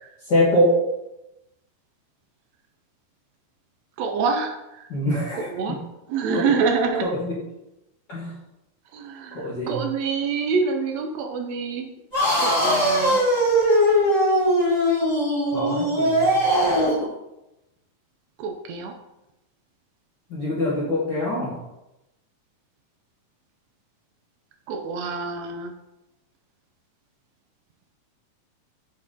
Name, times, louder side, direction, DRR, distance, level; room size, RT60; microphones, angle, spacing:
voice 1, 0.2-0.8 4.9-5.5 6.3-6.5 7.0-7.4 8.1-8.3 9.3-9.8 15.5-16.4 20.3-21.6, left 1 dB, 60° left, -7 dB, 1.1 m, -24 dB
voice 2, 4.0-4.9 5.3-5.8 6.1-7.1 8.9-11.9 12.4-13.2 18.4-18.9 24.7-25.7, right 5 dB, 85° right, 3 dB, 1.5 m, -26 dB
sound 1, 12.1-17.0, equal, 15° left, 0.8 m, -20 dB
6.5 x 4.0 x 3.7 m, 0.93 s
omnidirectional pair, 3.7 m